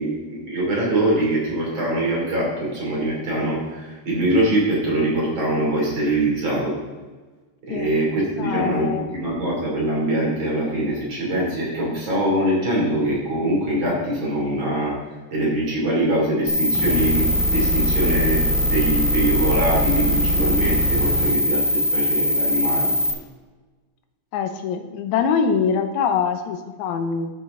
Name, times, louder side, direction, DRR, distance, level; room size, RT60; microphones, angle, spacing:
voice 1, 0.0-6.7 7.7-14.9 15.3-22.9, right 1 dB, 40° right, -4 dB, 3.7 m, -23 dB
voice 2, 8.4-9.1 24.3-27.3, left 6 dB, 75° left, 7 dB, 2.1 m, -23 dB
sound 1, 16.5-23.1, equal, 25° left, 1.1 m, -21 dB
13.0 x 6.6 x 3.8 m, 1.3 s
omnidirectional pair, 3.5 m